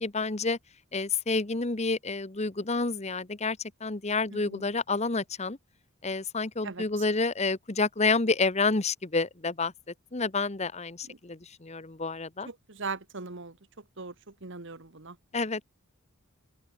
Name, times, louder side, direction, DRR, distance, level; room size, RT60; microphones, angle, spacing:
voice 1, 0.0-0.6 0.9-5.6 6.0-9.7 10.1-12.5 15.3-15.6, left 3 dB, 30° left, 1.1 m, -29 dB
voice 2, 4.3-4.7 6.6-6.8 11.1-11.2 12.4-13.6 14.0-15.2, right 4 dB, 55° right, 1.5 m, -39 dB
open air
head